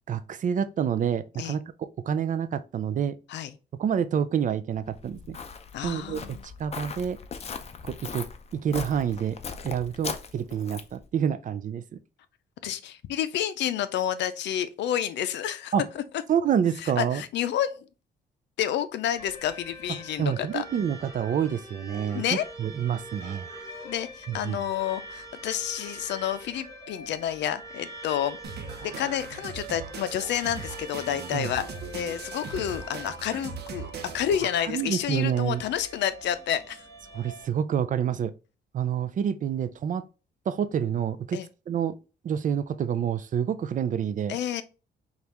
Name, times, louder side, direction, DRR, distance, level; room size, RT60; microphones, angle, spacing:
voice 1, 0.1-3.2 3.8-5.4 5.8-7.2 7.8-9.4 9.6-12.0 15.7-15.8 16.3-17.2 20.2-23.5 24.3-24.6 31.3-31.5 34.7-35.6 37.1-38.3 38.7-40.1 40.5-42.0 42.2-44.4, right 8 dB, 45° right, 0.4 m, -28 dB
Walk footsteps, 4.8-11.0, left 5 dB, 35° left, 0.6 m, -39 dB
voice 2, 5.7-6.4 12.6-15.7 16.8-17.8 18.6-20.6 22.1-22.4 23.8-28.4 28.8-31.6 31.9-36.8 41.3-41.5 44.3-44.6, left 10 dB, 80° left, 0.5 m, -29 dB
sound 1, 19.2-37.5, right 1 dB, 15° left, 1.7 m, -44 dB
sound 2, 28.4-34.4, right 5 dB, 70° right, 0.8 m, -40 dB
5.3 x 2.4 x 2.9 m
cardioid pair, 110°, 18 cm